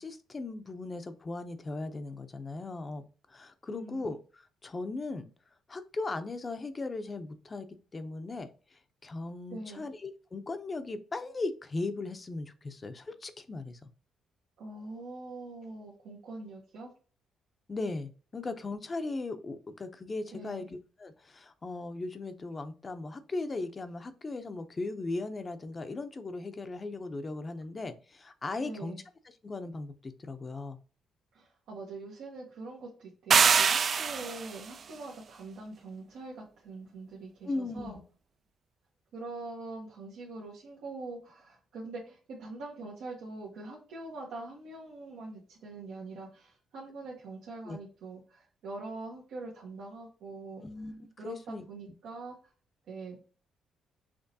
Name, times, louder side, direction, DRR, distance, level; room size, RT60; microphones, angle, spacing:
voice 1, 0.0-3.0 3.3-5.3 5.7-7.7 7.9-13.9 17.7-29.0 29.4-30.8 37.4-38.0 47.7-47.8 50.6-51.6, left 3 dB, 30° left, 9 dB, 0.6 m, -38 dB
voice 2, 3.7-4.1 9.5-9.8 14.6-16.9 20.3-20.7 28.6-29.0 31.3-38.0 39.1-50.6 51.2-52.5 52.9-53.2, right 3 dB, 80° right, -4 dB, 1.2 m, -43 dB
sound 1, 33.3-34.6, right 6 dB, 50° right, 0.3 m, -23 dB
5.9 x 3.1 x 2.7 m, 0.37 s
cardioid pair, 90°, 0 cm